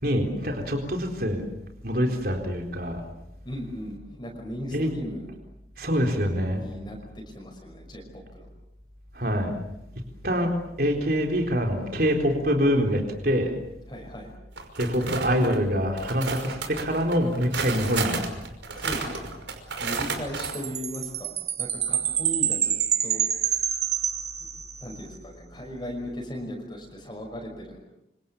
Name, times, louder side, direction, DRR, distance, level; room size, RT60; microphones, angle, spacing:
voice 1, 0.0-1.4 1.8-3.0 4.7-4.9 5.8-6.6 9.1-9.6 10.2-10.5 10.8-13.5 14.8-18.2, equal, 55° right, 3 dB, 4.1 m, -25 dB
voice 2, 3.4-5.3 6.5-8.5 13.9-14.3 15.1-15.2 18.7-19.3 19.8-22.7 23.0-23.3 24.8-27.8, equal, 25° left, 1 dB, 5.8 m, -37 dB
sound 1, 14.6-15.6 16.0-20.5, right 4 dB, 80° right, 5.6 m, -32 dB
Chime, 20.4-24.9, right 9 dB, 35° right, 2.0 m, -27 dB
29.5 x 26.5 x 7.3 m, 0.81 s
head